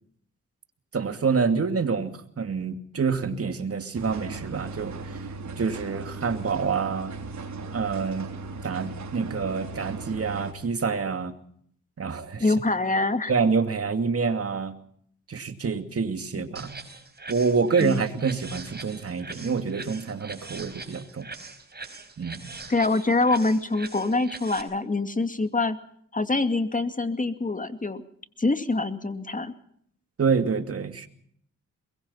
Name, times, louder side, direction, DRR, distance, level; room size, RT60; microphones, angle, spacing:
voice 1, 0.9-5.2 5.6-7.1 7.7-8.3 8.6-11.3 12.0-12.5 13.3-14.8 15.3-16.8 17.3-21.3 22.2-22.5 30.2-31.1, right 5 dB, 45° right, 8 dB, 2.6 m, -27 dB
sound 1, 3.9-10.5, right 3 dB, 60° right, 3.7 m, -37 dB
voice 2, 12.4-13.3 16.3-16.5 17.8-18.0 22.7-25.8 26.1-28.0 28.4-29.5, left 3 dB, 25° left, 9 dB, 2.3 m, -25 dB
sound 2, 16.6-24.6, right 3 dB, 30° right, 4.6 m, -42 dB
23.0 x 22.0 x 5.7 m, 0.65 s
cardioid pair, 60°, 32 cm